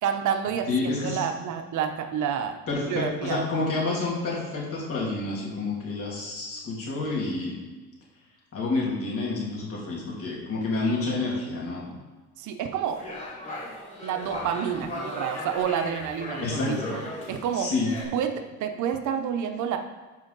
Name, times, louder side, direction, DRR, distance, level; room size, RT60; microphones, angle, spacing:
voice 1, 0.0-0.7 1.0-2.6 2.9-3.4 12.4-13.1 14.0-17.0 17.3-17.7 18.1-19.8, right 8 dB, 65° right, 6 dB, 0.8 m, -29 dB
voice 2, 0.7-1.2 2.7-7.6 8.5-11.9 16.4-17.0 17.5-17.9, left 3 dB, 45° left, -4 dB, 2.7 m, -29 dB
sound 1, 12.9-18.0, left 1 dB, 20° left, 2.8 m, -37 dB
12.5 x 4.5 x 4.0 m, 1.3 s
cardioid pair, 140°, 32 cm